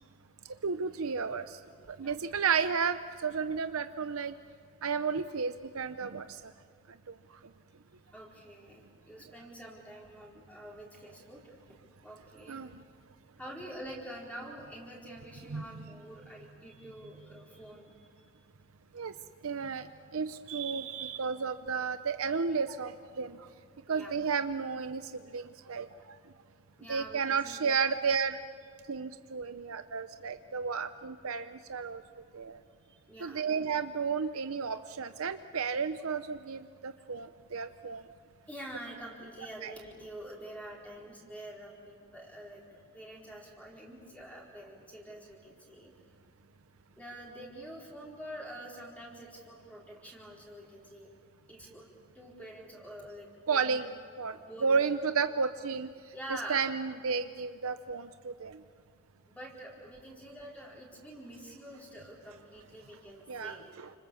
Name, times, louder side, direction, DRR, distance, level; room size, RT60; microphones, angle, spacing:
voice 1, 0.4-1.6 1.9-4.3 4.8-6.4 6.9-7.1 12.5-12.8 15.5-15.9 18.9-19.1 19.4-23.5 23.9-26.2 26.9-28.4 28.9-32.0 32.3-32.6 33.2-38.0 39.6-39.7 53.5-58.6 63.3-63.9, right 5 dB, 65° right, 10 dB, 0.7 m, -33 dB
voice 2, 8.1-12.6 13.4-18.3 23.2-23.3 23.9-24.1 26.8-27.8 33.1-33.4 38.5-45.9 47.0-51.1 51.5-51.9 52.1-53.8 54.3-54.8 56.1-56.7 59.3-63.7, right 1 dB, 5° left, -4 dB, 4.4 m, -46 dB
29.5 x 26.0 x 7.0 m, 2.2 s
head